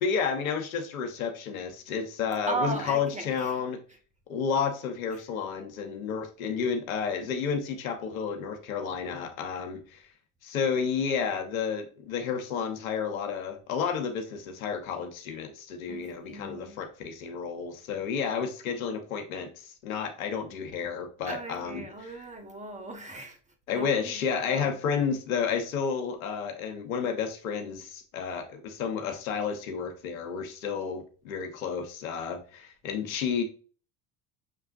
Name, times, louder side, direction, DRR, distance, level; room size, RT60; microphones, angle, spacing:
voice 1, 0.0-3.8 4.3-10.0 10.4-21.9 23.7-33.4, left 6 dB, 85° left, 1.0 m, -31 dB
voice 2, 2.5-3.6 3.9-4.0 5.1-5.2 15.9-16.8 21.2-23.4 23.7-24.8, right 3 dB, 15° right, 1.1 m, -37 dB
6.4 x 3.3 x 2.5 m
hypercardioid pair, 75°, 40 cm